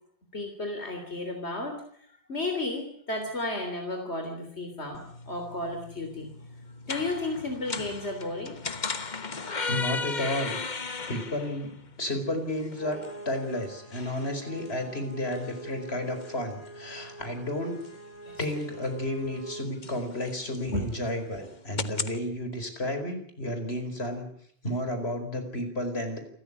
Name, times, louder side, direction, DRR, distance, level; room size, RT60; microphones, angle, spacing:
voice 1, 0.3-5.0 5.3-6.3 6.9-8.6 18.2-18.4 20.7-20.8, left 2 dB, 90° left, 4 dB, 3.7 m, -33 dB
sound 1, 4.9-22.2, left 4 dB, 45° left, 1.4 m, -38 dB
voice 2, 9.7-10.6 11.1-13.0 13.2-17.7 18.4-24.3 24.6-26.2, left 1 dB, 75° left, 7 dB, 4.9 m, -32 dB
sound 2, 12.8-19.6, right 2 dB, 15° right, 2.4 m, -45 dB
28.5 x 14.0 x 10.0 m, 0.65 s
omnidirectional pair, 1.1 m